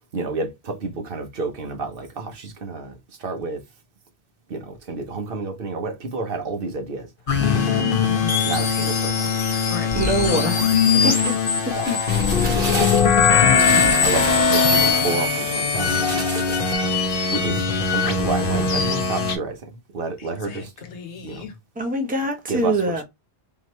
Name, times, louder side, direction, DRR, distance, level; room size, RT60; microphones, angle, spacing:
voice 1, 0.1-3.6 4.5-7.1 8.4-9.3 10.4-10.5 11.7-11.8 12.7-13.2 14.0-16.9 17.3-20.7 21.2-21.4 22.5-23.0, right 3 dB, 55° right, 1.1 m, -30 dB
sound 1, 7.3-19.4, left 5 dB, 55° left, 1.0 m, -20 dB
voice 2, 7.4-8.0 9.7-9.9 10.2-11.0 11.8-12.0 20.2-21.5, left 5 dB, 75° left, 1.1 m, -32 dB
voice 3, 9.9-10.5 11.0-11.3 21.8-23.0, right 1 dB, 10° right, 0.8 m, -23 dB
sound 2, 10.6-16.7, right 2 dB, 35° right, 1.5 m, -33 dB
3.9 x 3.0 x 3.1 m
omnidirectional pair, 1.2 m